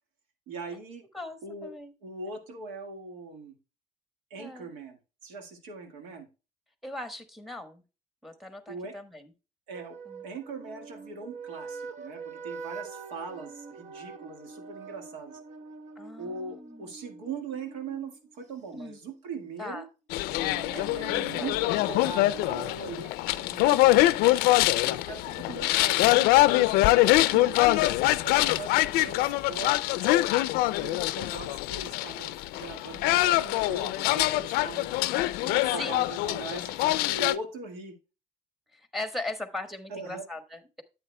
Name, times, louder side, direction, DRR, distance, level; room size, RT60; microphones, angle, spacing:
voice 1, 0.5-1.0 1.4-1.7 2.0-3.6 4.3-6.3 8.7-8.9 9.7-10.0 10.2-15.4 16.2-19.9 20.7-24.2 24.9-27.6 28.2-30.1 30.8-35.0 35.4-38.0 39.9-40.2, right 4 dB, 90° right, 6 dB, 1.6 m, -41 dB
voice 2, 1.1-1.9 4.4-4.7 6.8-7.8 8.2-9.3 10.0-10.2 15.9-16.9 18.7-19.0 19.6-19.8 21.4-21.5 28.4-28.6 34.9-35.0 35.8-36.1 38.7-40.8, left 2 dB, ahead, 8 dB, 1.3 m, -39 dB
sound 1, 9.7-18.8 20.3-22.7, right 4 dB, 50° right, 0.8 m, -44 dB
sound 2, 20.1-37.3, left 18 dB, 80° left, 0.4 m, -24 dB
10.0 x 7.9 x 2.2 m, 0.30 s
supercardioid pair, 85°, 16 cm